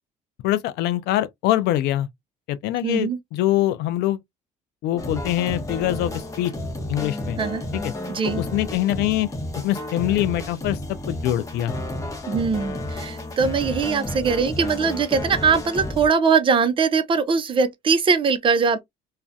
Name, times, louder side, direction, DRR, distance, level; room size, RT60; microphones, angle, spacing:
voice 1, 0.4-2.1 2.5-4.2 4.8-6.5 6.9-7.4 7.7-7.9 8.2-9.3 9.6-10.8 11.1-11.7, left 14 dB, 80° left, 0.4 m, -24 dB
voice 2, 2.8-3.2 7.4-7.6 8.1-8.4 12.3-18.8, right 5 dB, 30° right, 0.4 m, -21 dB
sound 1, 5.0-16.1, left 1 dB, 20° left, 0.8 m, -32 dB
2.4 x 2.1 x 2.6 m
cardioid pair, 110°, 17 cm